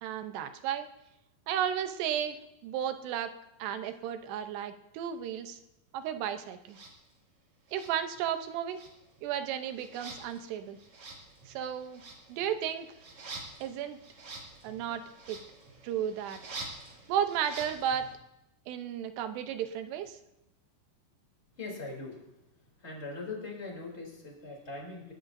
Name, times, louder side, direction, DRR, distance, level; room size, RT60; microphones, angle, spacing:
voice 1, 0.0-0.9 1.5-3.3 3.6-5.6 5.9-6.8 7.7-8.8 9.2-10.8 11.5-12.0 12.3-12.9 13.6-14.0 14.6-15.4 15.8-16.4 17.1-18.1 18.7-20.2, right 9 dB, 85° right, 8 dB, 3.0 m, -33 dB
sound 1, 6.7-6.9 7.7-8.4 8.7-18.1, right 3 dB, 45° right, 3.5 m, -47 dB
voice 2, 21.6-22.3 22.8-25.1, left 3 dB, 15° left, -1 dB, 2.9 m, -41 dB
27.5 x 12.5 x 2.7 m, 0.88 s
omnidirectional pair, 4.8 m